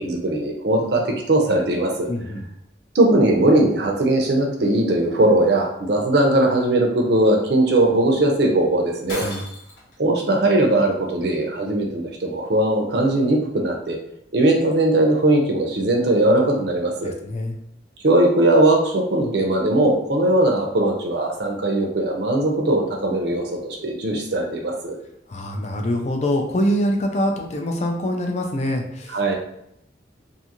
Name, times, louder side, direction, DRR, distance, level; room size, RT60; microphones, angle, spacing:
voice 1, 0.0-2.1 2.9-9.2 10.0-14.0 14.3-17.1 18.0-25.0 29.1-29.4, right 1 dB, 60° right, 1 dB, 0.5 m, -19 dB
voice 2, 2.1-2.5 9.2-9.4 17.0-17.5 25.3-29.2, equal, 35° left, 2 dB, 0.4 m, -24 dB
Shatter, 9.1-9.9, left 2 dB, 85° left, 1.1 m, -34 dB
2.6 x 2.4 x 2.8 m, 0.76 s
head